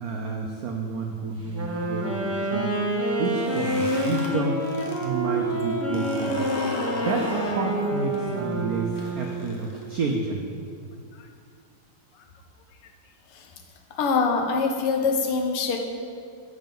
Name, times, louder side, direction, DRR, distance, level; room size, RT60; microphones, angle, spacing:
voice 1, 0.0-4.6 5.0-6.5 7.0-10.6, right 4 dB, 80° right, 1 dB, 0.8 m, -30 dB
Wind instrument woodwind instrument, 1.4-9.5, right 1 dB, 25° right, 0.3 m, -28 dB
sound 1, 3.2-5.1 5.4-10.2, left 2 dB, 55° left, 1.3 m, -36 dB
voice 2, 14.0-15.8, left 4 dB, 90° left, 2 dB, 1.8 m, -23 dB
7.6 x 6.7 x 5.3 m, 2.2 s
omnidirectional pair, 2.4 m